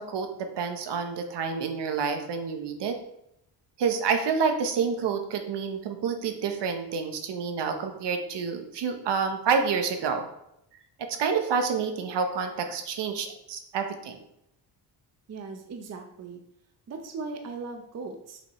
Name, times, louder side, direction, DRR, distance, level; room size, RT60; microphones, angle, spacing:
voice 1, 0.0-3.0 3.8-10.3 11.0-14.2, right 6 dB, 70° right, 6 dB, 0.9 m, -28 dB
voice 2, 15.3-16.4 16.9-18.4, right 4 dB, 35° right, 4 dB, 0.7 m, -38 dB
6.2 x 5.4 x 3.1 m, 0.80 s
cardioid pair, 145°, 43 cm